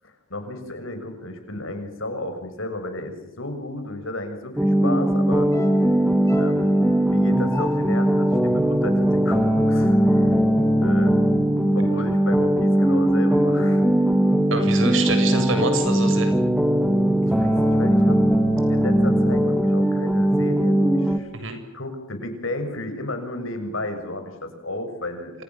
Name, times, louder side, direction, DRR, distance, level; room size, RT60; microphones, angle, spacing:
voice 1, 0.0-5.5 6.4-6.8 7.1-10.4 10.8-11.1 11.7-13.8 17.2-18.2 18.7-21.3 21.7-25.3, left 2 dB, 65° left, 7 dB, 6.8 m, -33 dB
sound 1, 4.6-21.2, right 1 dB, 5° right, 1.9 m, -19 dB
sound 2, 5.5-9.9 10.2-10.3, left 3 dB, 15° left, 3.7 m, -40 dB
voice 2, 14.5-16.3 21.3-21.6, right 2 dB, 60° right, 7 dB, 7.3 m, -26 dB
29.0 x 28.0 x 7.4 m, 0.86 s
head